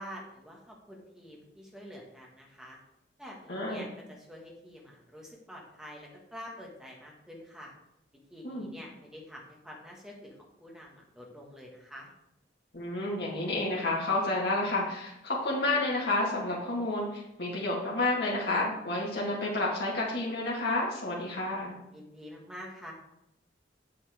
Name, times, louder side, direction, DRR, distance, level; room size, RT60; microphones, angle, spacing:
voice 1, 0.0-2.8 3.2-7.7 8.3-10.3 10.6-12.1 21.9-22.9, equal, 5° right, -2 dB, 1.7 m, -47 dB
voice 2, 3.5-3.9 8.4-8.7 12.7-21.8, left 2 dB, 65° left, -5 dB, 1.9 m, -30 dB
7.7 x 7.3 x 3.6 m, 0.84 s
head